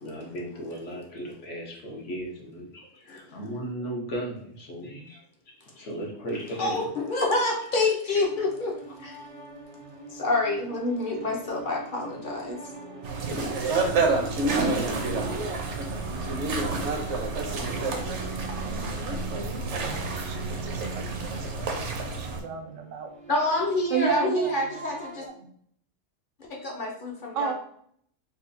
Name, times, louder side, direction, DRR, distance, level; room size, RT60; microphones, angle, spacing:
voice 1, 0.0-6.8 8.1-8.2, right 1 dB, 70° left, 1.3 m, -36 dB
voice 2, 6.6-9.2 10.1-12.6 23.3-25.2 26.5-27.5, left 2 dB, 50° left, 0.7 m, -27 dB
sound 1, 8.1-25.3, right 2 dB, 40° right, 0.5 m, -42 dB
sound 2, 13.0-22.4, right 3 dB, 70° right, 0.9 m, -29 dB
voice 3, 13.8-16.4 17.1-19.0 19.8-23.1 23.9-24.5 25.2-25.5 27.3-27.5, right 7 dB, 90° right, 1.0 m, -35 dB
4.1 x 2.3 x 2.6 m
omnidirectional pair, 1.3 m